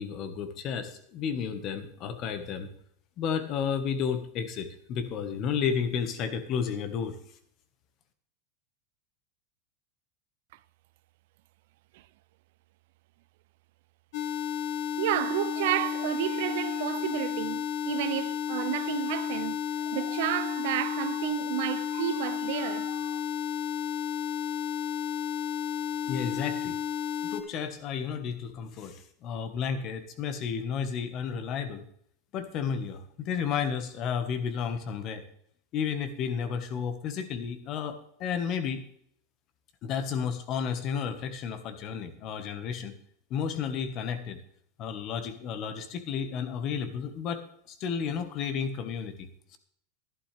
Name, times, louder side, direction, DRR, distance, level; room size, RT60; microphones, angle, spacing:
voice 1, 0.0-2.7 3.2-7.1 26.1-26.8 27.3-31.8 32.3-35.2 35.7-38.8 39.8-42.9 43.3-44.4 44.8-49.3, left 7 dB, 45° left, 1.5 m, -32 dB
sound 1, 14.1-27.4, left 9 dB, 65° left, 1.3 m, -32 dB
voice 2, 15.0-23.2, right 16 dB, 70° right, 0.4 m, -31 dB
12.0 x 11.0 x 3.4 m
hypercardioid pair, 110°, 0 cm